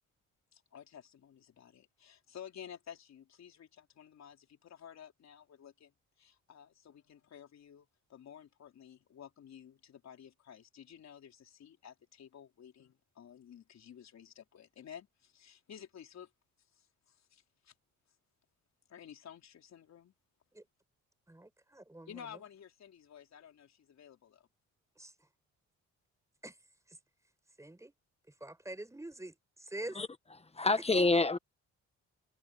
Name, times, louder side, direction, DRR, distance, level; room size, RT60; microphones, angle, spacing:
voice 1, 0.5-5.9 6.2-16.3 16.8-17.7 18.9-20.1 22.1-24.5, left 9 dB, 60° left, 4.3 m, -53 dB
voice 2, 21.3-22.4 25.0-25.1 26.4-26.6 26.9-27.0 27.6-27.9 28.4-30.0, right 1 dB, 10° right, 6.8 m, -45 dB
voice 3, 30.5-31.4, left 3 dB, 20° left, 1.3 m, -27 dB
cardioid pair, 90°, 30 cm